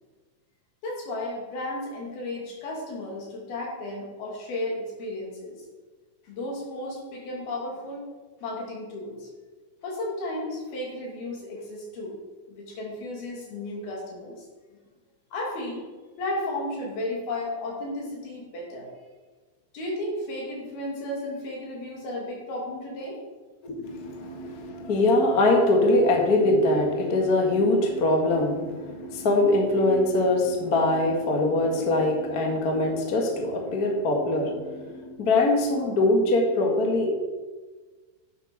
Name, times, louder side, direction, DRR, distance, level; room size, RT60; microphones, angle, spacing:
voice 1, 0.8-5.6 6.2-8.0 8.4-9.3 9.8-12.2 12.5-14.5 15.3-15.8 16.2-18.9 19.7-23.2, left 1 dB, 70° left, -2 dB, 4.4 m, -33 dB
voice 2, 23.6-37.1, left 2 dB, 50° left, 1 dB, 1.1 m, -23 dB
9.7 x 7.9 x 6.1 m, 1.4 s
omnidirectional pair, 4.6 m